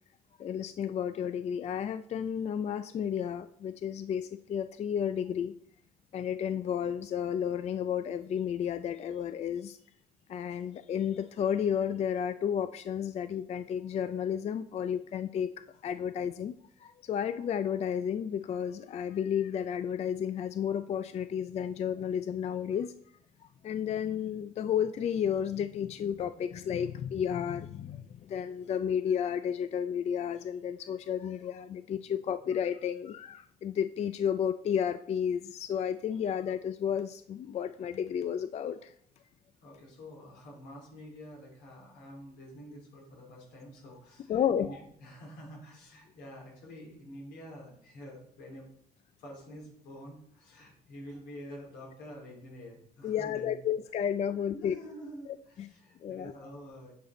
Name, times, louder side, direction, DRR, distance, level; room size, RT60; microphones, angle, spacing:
voice 1, 0.4-5.5 6.1-9.8 10.3-15.5 15.8-16.5 16.8-22.9 23.6-38.9 44.3-44.7 53.0-54.8 55.6-55.7 56.0-56.3, left 8 dB, 40° left, 12 dB, 0.4 m, -32 dB
voice 2, 39.6-48.7 49.2-53.6 54.3-56.9, equal, 80° left, -2 dB, 3.6 m, -48 dB
9.4 x 5.8 x 4.2 m, 0.65 s
cardioid pair, 110°, 17 cm